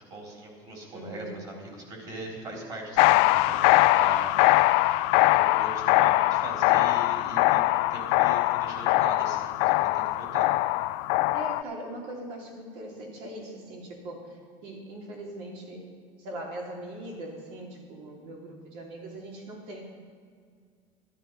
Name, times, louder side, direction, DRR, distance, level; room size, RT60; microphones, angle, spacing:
voice 1, 0.1-4.3 4.9-10.5, right 1 dB, 40° right, 0 dB, 4.1 m, -40 dB
voice 2, 0.9-1.5 11.3-14.2 14.6-15.9 16.2-19.8, right 1 dB, 65° right, 0 dB, 3.3 m, -40 dB
sound 1, 3.0-11.6, left 18 dB, 70° left, 0.4 m, -22 dB
13.0 x 12.0 x 5.5 m, 2.1 s
cardioid pair, 155°, 11 cm